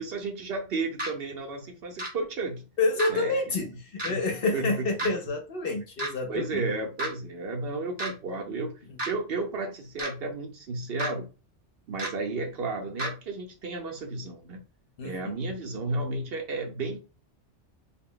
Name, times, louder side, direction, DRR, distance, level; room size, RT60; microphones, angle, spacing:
voice 1, 0.0-2.7 3.1-3.3 4.1-4.2 4.5-4.7 6.3-8.7 9.1-11.3 11.9-14.6 15.0-17.0, right 3 dB, 60° right, 0.7 m, -33 dB
sound 1, 1.0-1.1 2.0-2.1 3.0-3.1 4.0-4.1 5.0-5.1 6.0-6.1 7.0-7.1 8.0-8.1 9.0-9.1 10.0-10.1 11.0-11.1 12.0-12.1 13.0-13.1, right 1 dB, 25° right, 0.6 m, -31 dB
voice 2, 2.8-6.6 8.9-9.0 15.0-15.3, left 3 dB, 60° left, 0.7 m, -28 dB
2.2 x 2.1 x 3.6 m
omnidirectional pair, 1.2 m